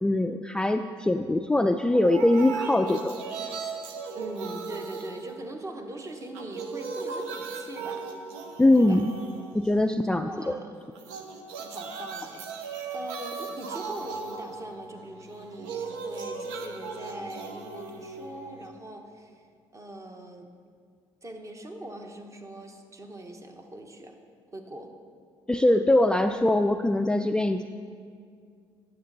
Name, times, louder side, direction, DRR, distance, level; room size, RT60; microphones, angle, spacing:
voice 1, 0.0-3.2 8.6-9.1 9.5-10.5 25.5-27.6, left 1 dB, 10° left, 7 dB, 0.3 m, -22 dB
sound 1, 1.9-5.9 6.2-10.0 10.9-18.9, right 4 dB, 90° right, 0.7 m, -37 dB
voice 2, 4.1-8.0 8.7-9.0 10.2-10.7 11.6-19.4 19.7-20.5 21.2-24.2 24.5-24.9, right 1 dB, 30° right, 4 dB, 1.1 m, -41 dB
10.0 x 6.7 x 4.0 m, 2.1 s
supercardioid pair, 65°, 10 cm